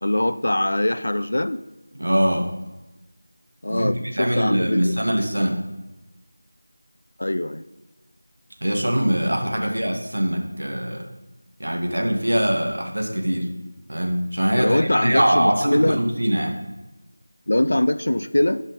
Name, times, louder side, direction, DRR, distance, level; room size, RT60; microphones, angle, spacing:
voice 1, 0.0-1.6 3.6-4.9 7.2-7.6 9.6-9.7 14.5-16.0 17.5-18.6, left 1 dB, 55° left, 12 dB, 0.5 m, -22 dB
voice 2, 1.9-2.5 3.7-5.6 8.6-11.0 11.6-13.5 13.9-16.6, equal, 65° right, 2 dB, 2.0 m, -22 dB
11.0 x 5.5 x 5.2 m, 1.1 s
figure-of-eight pair, 170°, 0 cm